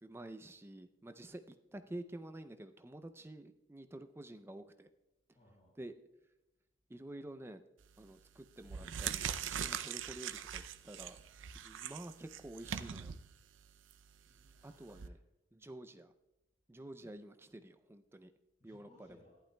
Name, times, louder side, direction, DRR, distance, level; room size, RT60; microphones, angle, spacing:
voice 1, 0.0-4.9 5.8-6.0 6.9-7.6 8.0-11.2 11.5-13.1 14.6-15.2 15.5-16.1 16.7-18.3 18.6-19.1, right 1 dB, 10° right, 9 dB, 0.4 m, -49 dB
voice 2, 5.3-5.7 14.2-15.2 18.6-19.4, left 1 dB, 35° left, -7 dB, 4.1 m, -65 dB
sound 1, 7.8-8.1 8.6-15.1, right 8 dB, 70° right, 0.5 m, -42 dB
14.5 x 11.5 x 2.2 m, 0.99 s
head